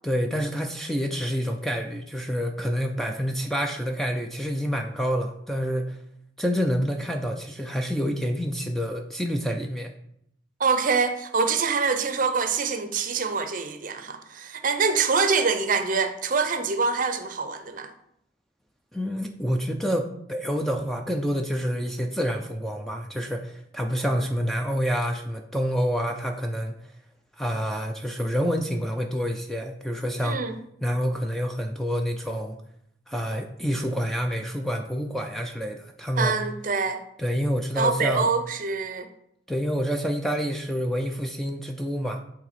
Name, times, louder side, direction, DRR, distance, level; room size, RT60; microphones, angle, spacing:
voice 1, 0.0-6.0 6.4-9.9 18.9-26.8 27.4-30.4 30.8-32.6 33.1-36.3 37.2-38.3 39.5-42.2, equal, ahead, 0.4 m, -28 dB
voice 2, 10.6-17.9 30.2-30.5 36.2-37.0 37.8-39.1, right 5 dB, 45° right, 0.6 m, -25 dB
8.6 x 3.7 x 4.2 m
head